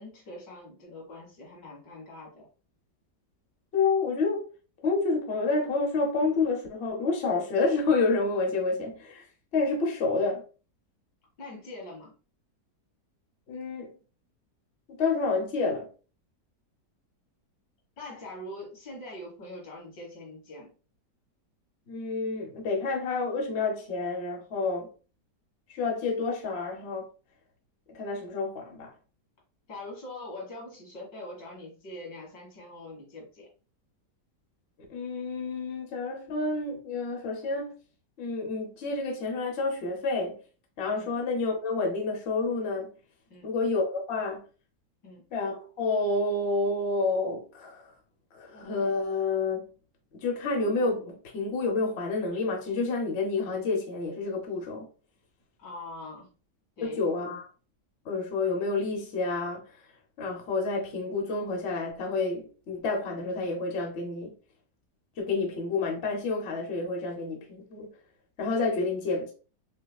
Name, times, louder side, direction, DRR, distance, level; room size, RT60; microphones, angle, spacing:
voice 1, 0.0-2.5 11.4-12.1 18.0-20.7 29.7-33.5 40.9-41.1 43.3-43.5 45.0-45.2 55.6-56.3 56.8-57.0, left 2 dB, 85° left, 2.7 m, -43 dB
voice 2, 3.7-4.5 4.8-9.2 9.5-10.4 13.5-13.9 14.9-15.9 21.9-24.9 25.7-27.1 27.9-28.9 34.9-37.7 38.2-40.4 40.8-42.9 43.4-44.5 45.3-47.8 48.3-49.7 50.1-54.9 56.8-57.4 58.0-59.7 60.2-64.3 65.2-67.9 68.4-69.3, left 3 dB, 45° left, 1.0 m, -29 dB
5.5 x 2.2 x 2.3 m
omnidirectional pair, 1.9 m